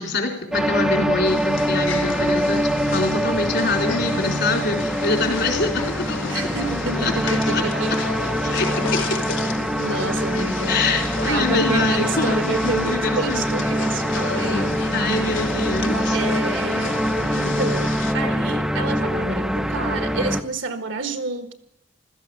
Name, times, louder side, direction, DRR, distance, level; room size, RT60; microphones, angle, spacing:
voice 1, 0.0-6.5 6.9-7.6 8.4-8.7 10.7-13.6 14.9-16.2, left 3 dB, 65° left, 3.9 m, -25 dB
sound 1, 0.5-20.4, equal, ahead, 0.6 m, -24 dB
sound 2, 1.2-18.1, left 4 dB, 80° left, 1.2 m, -32 dB
voice 2, 6.3-9.1 9.7-10.8 11.2-14.8 16.1-17.0 17.3-21.5, right 3 dB, 75° right, 1.6 m, -29 dB
16.0 x 13.0 x 6.6 m
head